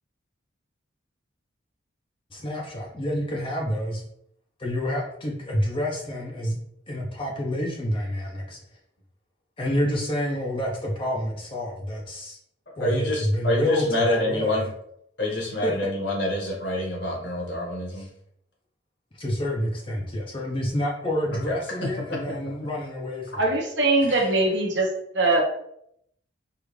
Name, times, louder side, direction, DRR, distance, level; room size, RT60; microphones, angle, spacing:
voice 1, 2.3-4.0 4.6-6.6 6.9-8.6 9.6-12.4 12.8-14.7 15.6-15.9 17.9-18.1 19.1-23.4, equal, 25° left, -2 dB, 0.5 m, -28 dB
voice 2, 12.8-14.7 15.2-18.1 21.5-21.6 21.8-22.3 24.1-24.3, left 1 dB, 60° left, -3 dB, 1.3 m, -27 dB
voice 3, 23.4-24.9 25.1-25.4, right 2 dB, 65° right, 0 dB, 0.9 m, -21 dB
4.9 x 2.4 x 3.2 m, 0.72 s
head